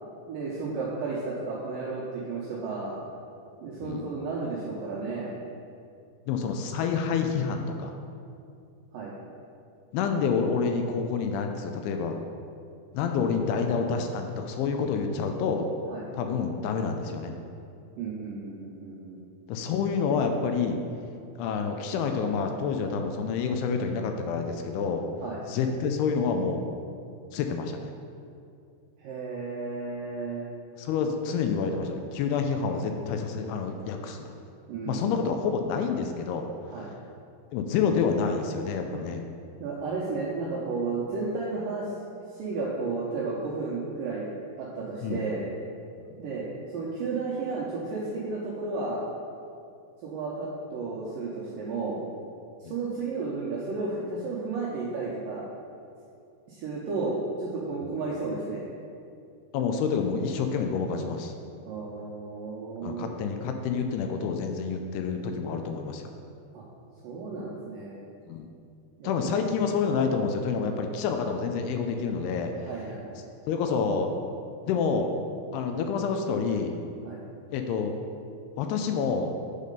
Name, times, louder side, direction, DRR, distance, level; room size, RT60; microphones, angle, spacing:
voice 1, 0.3-3.0 3.6-5.3 8.9-9.1 15.9-16.1 18.0-19.2 25.2-25.4 29.0-30.5 34.7-35.2 36.7-36.9 38.9-39.0 39.6-41.9 42.3-44.3 44.6-45.4 46.2-46.5 46.7-49.1 50.0-52.0 52.6-55.4 56.5-58.6 61.6-63.1 66.5-66.6 67.0-68.0 69.0-69.1 72.6-73.2 77.0-77.2, right 3 dB, 75° right, -6 dB, 2.1 m, -33 dB
voice 2, 6.3-8.0 9.9-12.2 12.9-15.7 16.1-17.3 19.5-20.8 21.4-25.0 25.4-26.7 27.3-27.9 30.8-34.3 34.9-36.5 37.5-39.2 45.0-45.2 52.7-52.8 57.9-58.0 59.5-61.3 62.8-66.1 68.3-68.5 69.0-72.5 73.5-74.1 74.7-75.1 75.5-76.8 77.5-78.0 78.6-79.3, left 5 dB, 85° left, 5 dB, 2.5 m, -28 dB
8.2 x 4.2 x 5.2 m, 2.4 s
omnidirectional pair, 4.8 m